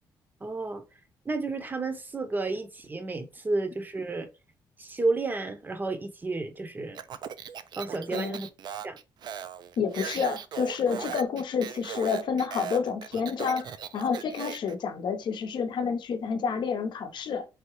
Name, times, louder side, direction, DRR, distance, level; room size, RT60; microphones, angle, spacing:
voice 1, 0.4-0.8 1.3-4.3 4.8-7.0 7.8-8.5 8.8-9.0, right 3 dB, 20° right, 0.7 m, -31 dB
Speech, 6.9-14.7, right 8 dB, 55° right, 0.4 m, -39 dB
voice 2, 8.1-8.4 9.8-17.5, left 6 dB, 60° left, 0.7 m, -29 dB
3.8 x 3.4 x 2.9 m
cardioid pair, 100°, 9 cm